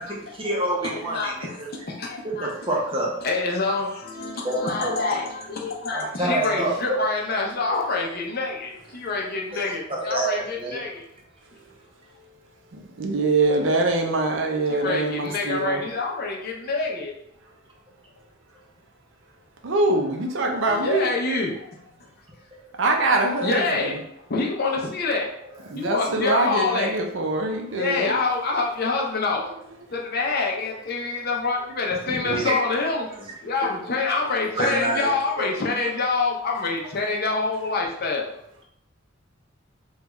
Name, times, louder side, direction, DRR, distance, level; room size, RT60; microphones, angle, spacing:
voice 1, 0.0-1.7 2.2-3.1 4.4-5.2 5.9-6.8 7.7-7.8 9.5-10.8 22.5-22.6 31.9-32.6 34.6-35.5, right 2 dB, 25° right, -2 dB, 0.7 m, -28 dB
voice 2, 0.8-1.6 1.9-2.5 3.2-11.1 14.7-17.1 20.7-22.1 23.4-24.0 24.3-25.3 25.7-26.9 27.7-29.4 29.9-33.1 33.4-38.2, left 3 dB, 50° left, 0 dB, 0.6 m, -26 dB
voice 3, 12.7-15.8 19.6-21.1 22.8-24.0 25.7-28.2 32.3-32.5, right 2 dB, 70° right, 3 dB, 0.5 m, -24 dB
3.4 x 2.3 x 3.0 m, 0.74 s
head